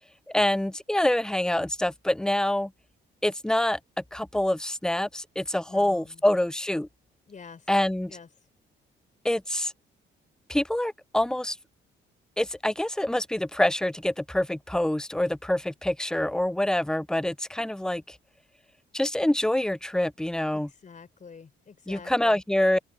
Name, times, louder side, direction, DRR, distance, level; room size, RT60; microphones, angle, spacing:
voice 1, 0.3-2.7 3.2-3.8 4.1-6.9 7.7-8.1 9.2-9.7 10.5-11.6 12.4-18.2 18.9-20.7 21.9-22.8, left 1 dB, 5° left, 0.4 m, -26 dB
voice 2, 5.7-6.2 7.3-7.7 8.1-8.3 20.5-22.4, left 5 dB, 40° left, 4.6 m, -47 dB
open air
cardioid pair, 90°, 20 cm